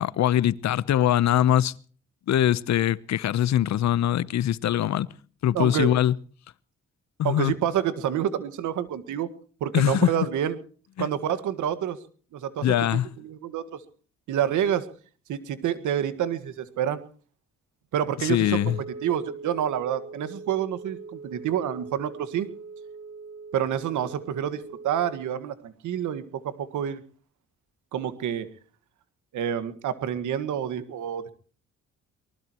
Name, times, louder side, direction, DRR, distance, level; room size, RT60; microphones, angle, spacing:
voice 1, 0.0-1.7 2.3-5.1 5.4-6.1 7.2-7.5 9.7-10.1 11.0-11.1 12.6-13.1 18.2-18.8, left 11 dB, 65° left, 0.9 m, -22 dB
voice 2, 5.5-5.9 7.2-9.3 9.6-10.6 11.0-12.0 12.3-13.8 14.3-14.9 15.3-17.0 17.9-18.7 19.0-22.5 23.5-27.0 27.9-28.5 29.3-31.3, right 9 dB, 80° right, 1.8 m, -28 dB
Wind instrument woodwind instrument, 18.3-25.4, right 4 dB, 20° right, 7.1 m, -42 dB
24.0 x 20.0 x 3.0 m
cardioid pair, 90°, 30 cm